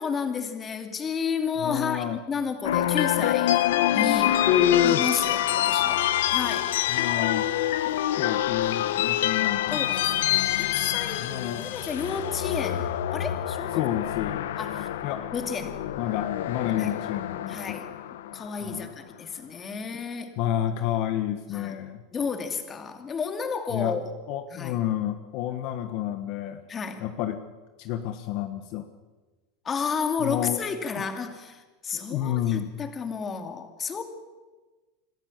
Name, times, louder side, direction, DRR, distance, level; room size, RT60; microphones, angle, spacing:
voice 1, 0.0-3.6 3.9-4.5 4.8-6.7 9.7-13.8 14.6-14.9 15.3-15.8 16.8-17.0 17.5-17.9 18.3-20.3 21.5-21.8 22.1-24.0 24.5-24.8 26.7-27.0 29.6-34.0, left 5 dB, 25° left, 7 dB, 2.5 m, -32 dB
voice 2, 1.6-2.2 4.5-5.0 6.9-7.5 7.8-9.8 11.2-11.8 13.7-14.4 15.0-15.3 16.0-17.8 18.6-18.9 20.4-22.0 23.7-24.0 24.3-26.6 27.0-27.4 27.8-28.9 30.2-30.6 30.9-31.1 31.9-32.7, left 11 dB, 55° left, 8 dB, 1.3 m, -29 dB
sound 1, 2.6-18.8, left 12 dB, 85° left, 1.0 m, -26 dB
26.5 x 13.5 x 7.4 m, 1.3 s
supercardioid pair, 130°, 0 cm